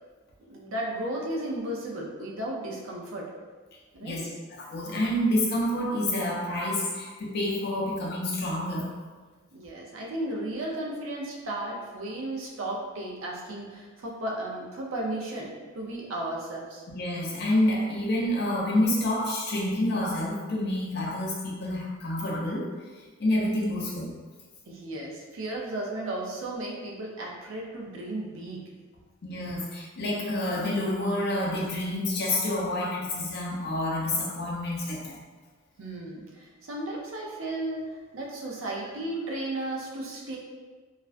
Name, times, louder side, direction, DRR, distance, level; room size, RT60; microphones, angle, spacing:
voice 1, 0.4-3.3 3.9-4.3 9.5-16.8 24.7-28.6 35.8-40.4, right 1 dB, 75° right, -2 dB, 0.5 m, -34 dB
voice 2, 4.0-8.9 16.9-22.7 23.2-24.1 29.2-35.2, left 1 dB, 50° left, -3 dB, 0.5 m, -28 dB
2.4 x 2.1 x 2.4 m, 1.4 s
head